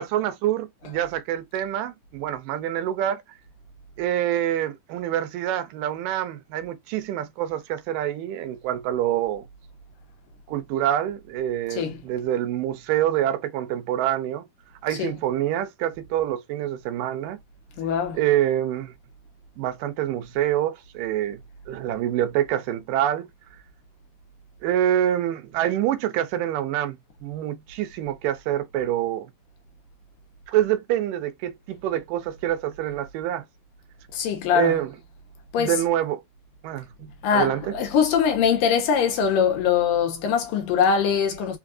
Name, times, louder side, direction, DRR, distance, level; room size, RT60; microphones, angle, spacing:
voice 1, 0.0-3.2 4.0-9.4 10.5-14.5 14.8-17.4 18.1-18.9 19.6-21.4 21.7-23.3 24.6-27.0 27.2-29.3 30.5-33.5 34.5-34.9 35.6-36.2 36.6-37.6, right 11 dB, 80° right, 2.1 m, -26 dB
voice 2, 11.7-12.0 14.9-15.1 17.8-18.2 34.1-34.8 35.5-35.8 37.2-41.6, left 7 dB, 80° left, 2.6 m, -22 dB
5.7 x 2.4 x 2.4 m
omnidirectional pair, 4.0 m